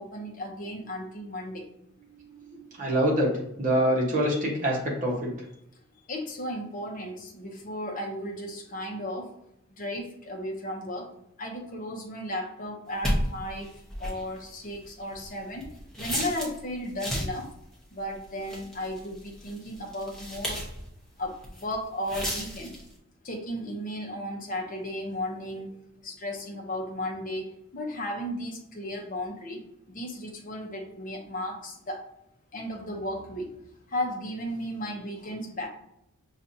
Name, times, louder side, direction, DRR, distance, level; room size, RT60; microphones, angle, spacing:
voice 1, 0.0-1.7 6.1-9.3 9.7-11.1 11.4-15.7 16.0-17.5 17.9-20.6 21.2-22.7 23.2-25.8 26.0-32.0 32.5-33.5 33.9-35.7, left 1 dB, 35° left, 1 dB, 0.7 m, -35 dB
voice 2, 2.1-3.3 3.6-5.3, right 1 dB, 35° right, -3 dB, 1.2 m, -26 dB
sound 1, 13.0-16.6 16.9-17.5 18.1-20.9 21.2-21.7 22.0-22.9, equal, ahead, 0.8 m, -33 dB
5.7 x 2.4 x 2.7 m, 0.80 s
head